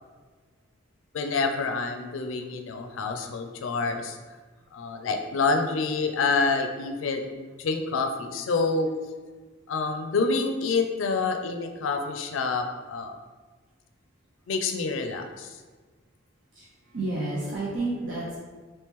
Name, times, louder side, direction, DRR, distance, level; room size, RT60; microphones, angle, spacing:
voice 1, 1.1-4.2 4.7-7.3 7.6-8.9 9.7-13.2 14.5-15.6, left 4 dB, 80° left, 6 dB, 0.4 m, -27 dB
voice 2, 16.5-18.4, right 2 dB, 70° right, -6 dB, 0.7 m, -31 dB
3.0 x 2.9 x 3.5 m, 1.4 s
head